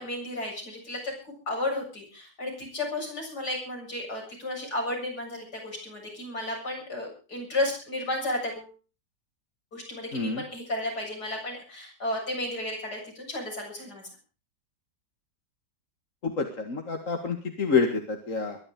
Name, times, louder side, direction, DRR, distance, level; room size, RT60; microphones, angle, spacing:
voice 1, 0.0-8.7 9.7-14.1, left 1 dB, 70° left, 0 dB, 8.3 m, -33 dB
voice 2, 10.1-10.4 16.2-18.6, left 4 dB, 50° left, 4 dB, 2.2 m, -28 dB
22.5 x 11.0 x 5.0 m, 0.35 s
omnidirectional pair, 1.8 m